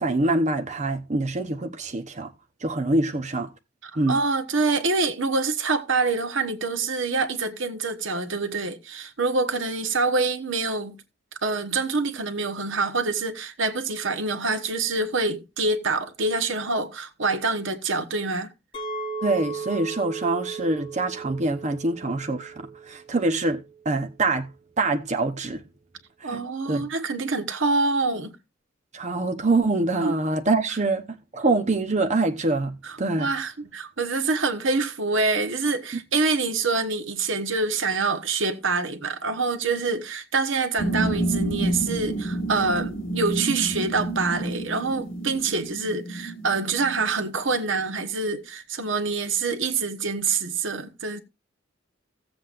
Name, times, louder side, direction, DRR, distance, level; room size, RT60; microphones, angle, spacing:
voice 1, 0.0-2.3 2.6-3.5 4.0-4.2 19.2-24.5 24.8-25.6 26.2-26.4 26.7-26.8 28.9-31.0 31.3-33.3, right 2 dB, 40° right, 0.9 m, -25 dB
voice 2, 3.8-11.0 11.4-18.5 26.2-28.3 30.0-30.2 32.8-51.2, right 3 dB, 75° right, 1.2 m, -26 dB
Chink clink, 18.7-23.9, right 4 dB, 30° left, 3.5 m, -36 dB
sound 1, 40.8-47.7, right 2 dB, 80° left, 1.9 m, -29 dB
16.0 x 7.7 x 2.5 m
head